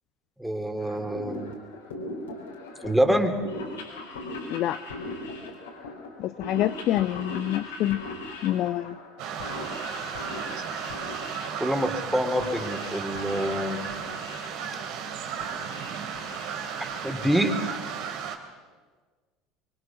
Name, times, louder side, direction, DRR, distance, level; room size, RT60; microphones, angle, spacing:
voice 1, 0.4-1.5 2.8-3.4 11.6-13.8 16.8-17.8, equal, 5° right, 3.4 m, -26 dB
sound 1, 0.8-18.2, left 2 dB, 80° left, 5.1 m, -40 dB
voice 2, 6.2-8.0 8.4-9.0, left 13 dB, 50° left, 0.6 m, -26 dB
sound 2, 9.2-18.4, right 7 dB, 60° right, 3.1 m, -34 dB
25.5 x 23.5 x 6.2 m
figure-of-eight pair, 70°, 0 cm